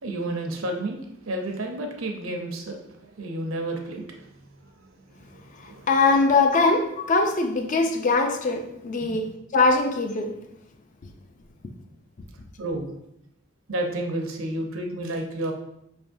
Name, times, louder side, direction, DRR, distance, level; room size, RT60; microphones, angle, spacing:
voice 1, 0.0-4.0 4.9-5.9 9.0-9.2 12.6-12.9 13.7-15.5, right 1 dB, 80° right, 0.7 m, -31 dB
voice 2, 5.9-10.4, left 3 dB, 40° left, 0.4 m, -22 dB
5.1 x 3.4 x 2.6 m
head